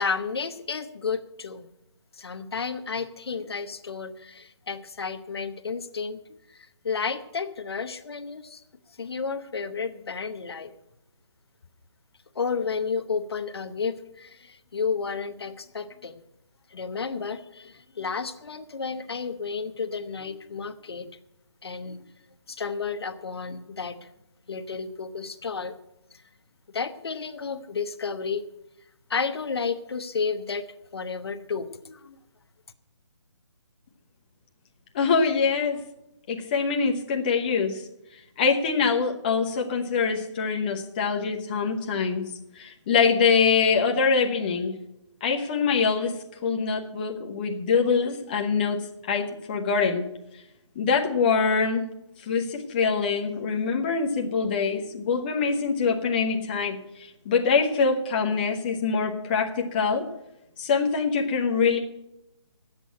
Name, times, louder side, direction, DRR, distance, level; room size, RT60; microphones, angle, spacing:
voice 1, 0.0-1.7 2.1-6.2 6.5-6.6 6.8-8.6 9.0-10.7 12.3-16.2 16.7-21.0 21.6-22.0 22.5-24.0 24.5-25.8 26.7-28.4 29.1-30.7 30.9-32.2, left 5 dB, 55° left, 10 dB, 0.9 m, -32 dB
voice 2, 34.9-35.8 36.3-37.9 38.1-44.8 45.2-50.1 50.3-50.4 50.7-51.9 52.2-60.0 60.6-61.8, left 5 dB, 20° left, 1 dB, 0.9 m, -24 dB
11.5 x 8.3 x 9.2 m, 0.88 s
hypercardioid pair, 170°, 15 cm